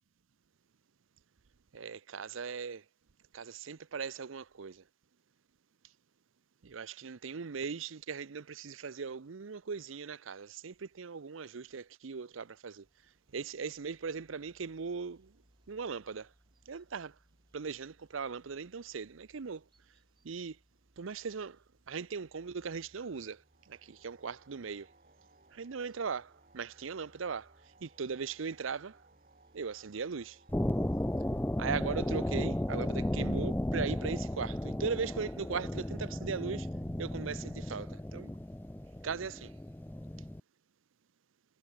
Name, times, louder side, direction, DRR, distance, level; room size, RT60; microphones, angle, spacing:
voice 1, 1.7-2.8 3.3-4.8 6.6-12.9 13.3-15.4 15.7-16.3 16.7-17.2 17.5-19.7 20.2-20.6 21.0-21.6 21.9-24.9 25.5-27.5 27.8-29.0 29.5-30.4 31.6-36.7 37.0-38.3 39.0-39.5, right 5 dB, 85° right, 0.6 m, -39 dB
sound 1, 12.8-31.4, equal, 25° right, 6.9 m, -69 dB
sound 2, 23.3-31.7, right 3 dB, 40° right, 6.4 m, -64 dB
sound 3, 30.5-40.4, left 1 dB, 10° left, 0.5 m, -34 dB
head